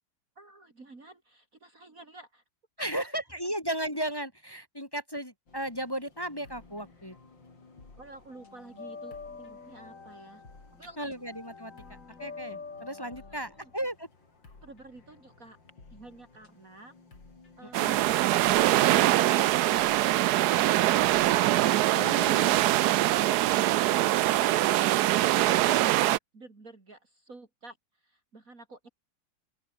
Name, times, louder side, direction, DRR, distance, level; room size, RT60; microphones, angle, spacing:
voice 1, 0.4-2.4 2.8-3.1 3.4-3.5 8.0-10.4 10.7-11.3 13.2-13.7 14.6-15.6 15.9-17.0 24.2-28.9, right 2 dB, 45° right, 4.0 m, -51 dB
voice 2, 2.8-7.2 11.0-14.1 17.6-18.0 21.9-22.6, right 1 dB, 10° left, 2.2 m, -35 dB
sound 1, 5.5-21.9, left 3 dB, 65° left, 5.3 m, -56 dB
sound 2, 6.4-7.5 7.8-15.7, left 4 dB, 40° left, 2.7 m, -46 dB
sound 3, 17.7-26.2, right 15 dB, 70° right, 1.0 m, -23 dB
open air
omnidirectional pair, 2.1 m